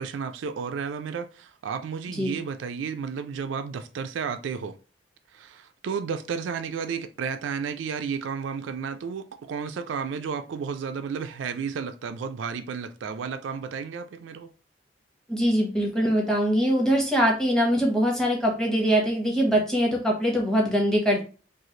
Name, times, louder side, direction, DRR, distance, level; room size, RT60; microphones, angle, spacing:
voice 1, 0.0-4.8 5.3-14.5, right 6 dB, 80° right, 0.3 m, -32 dB
voice 2, 15.3-21.2, equal, 5° left, 0.9 m, -23 dB
3.1 x 2.4 x 3.7 m
head